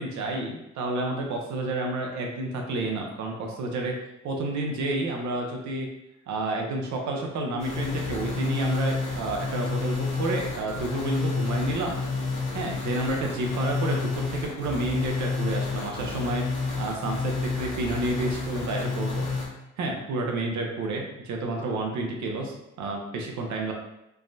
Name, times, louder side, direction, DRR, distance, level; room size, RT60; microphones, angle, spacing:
voice 1, 0.0-4.0 4.2-5.9 6.3-12.0 12.5-16.4 16.8-19.3 19.8-23.7, right 2 dB, 70° right, 1 dB, 0.7 m, -30 dB
sound 1, 7.6-19.5, left 4 dB, 70° left, 1.1 m, -30 dB
3.4 x 2.1 x 2.6 m, 0.86 s
cardioid pair, 90°, 30 cm